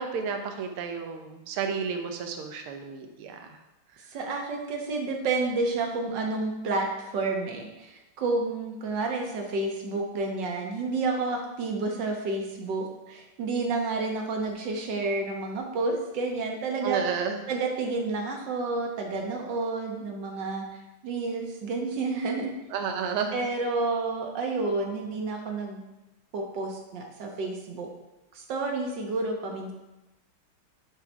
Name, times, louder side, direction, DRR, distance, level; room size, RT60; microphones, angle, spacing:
voice 1, 0.0-3.4 16.8-17.5 22.7-23.4, right 6 dB, 85° right, 5 dB, 1.7 m, -31 dB
voice 2, 4.1-17.1 17.5-20.6 21.0-22.5 23.3-25.8 26.3-27.9 28.3-29.7, right 3 dB, 60° right, 2 dB, 1.7 m, -30 dB
10.0 x 3.9 x 4.5 m, 0.99 s
omnidirectional pair, 2.4 m